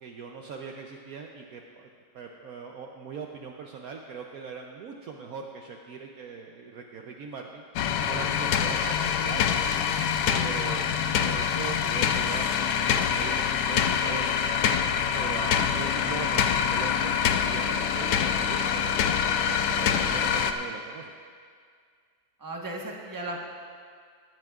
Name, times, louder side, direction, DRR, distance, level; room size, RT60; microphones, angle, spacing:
voice 1, 0.0-1.9 2.1-7.6 8.0-9.6 10.3-14.5 15.1-19.0 19.6-21.1, right 5 dB, 65° right, 2 dB, 1.0 m, -40 dB
sound 1, 7.8-20.5, left 8 dB, 80° left, 1.2 m, -25 dB
voice 2, 22.4-23.4, right 1 dB, 15° right, -1 dB, 1.1 m, -35 dB
18.5 x 12.0 x 2.4 m, 2.1 s
omnidirectional pair, 1.9 m